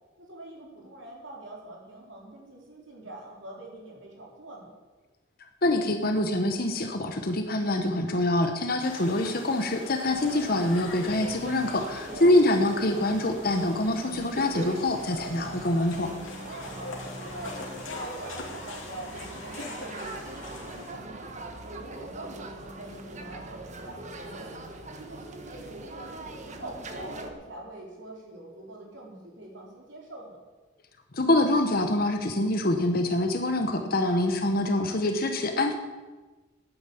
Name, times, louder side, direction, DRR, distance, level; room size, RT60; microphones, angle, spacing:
voice 1, 0.2-4.7 12.0-12.3 15.1-15.3 16.4-17.0 17.3-21.3 21.6-24.5 24.9-30.5 34.0-34.3, right 2 dB, 70° right, -2 dB, 4.1 m, -44 dB
voice 2, 5.6-16.1 31.1-35.8, left 1 dB, 50° left, 5 dB, 1.1 m, -25 dB
sound 1, 8.8-20.9, left 3 dB, 85° left, 2.9 m, -43 dB
sound 2, 10.1-27.3, right 2 dB, 35° right, 1.3 m, -41 dB
11.5 x 9.3 x 8.5 m, 1.3 s
head